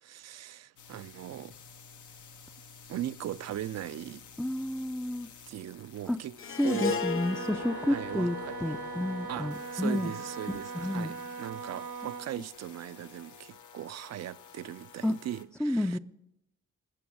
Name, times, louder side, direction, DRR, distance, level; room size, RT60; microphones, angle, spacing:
voice 1, 0.0-1.5 2.9-4.2 5.5-6.4 6.6-7.1 7.9-8.6 9.3-16.0, right 12 dB, 65° right, 0.4 m, -39 dB
sound 1, 0.8-15.4, left 5 dB, 90° left, 1.1 m, -51 dB
voice 2, 4.4-5.3 6.1-6.2 6.6-10.1 10.8-11.1 15.0-15.1 15.6-16.0, left 1 dB, 5° left, 0.4 m, -30 dB
Harp, 6.4-10.8, left 5 dB, 45° left, 0.8 m, -37 dB
Wind instrument woodwind instrument, 7.0-12.4, right 5 dB, 80° right, 1.2 m, -40 dB
19.0 x 6.9 x 6.2 m
cardioid pair, 75°, 29 cm